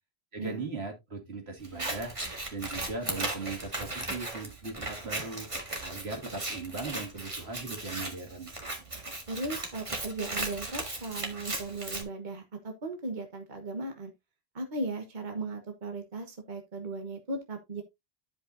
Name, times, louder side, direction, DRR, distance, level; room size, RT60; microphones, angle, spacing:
voice 1, 0.3-2.1 2.5-5.5 5.8-8.6, right 3 dB, 80° right, 2.6 m, -38 dB
Scissors, 1.6-12.0, right 2 dB, 30° right, 1.9 m, -37 dB
voice 2, 9.3-14.1 14.5-17.8, right 2 dB, 50° right, 1.4 m, -37 dB
12.5 x 5.4 x 2.6 m
omnidirectional pair, 1.0 m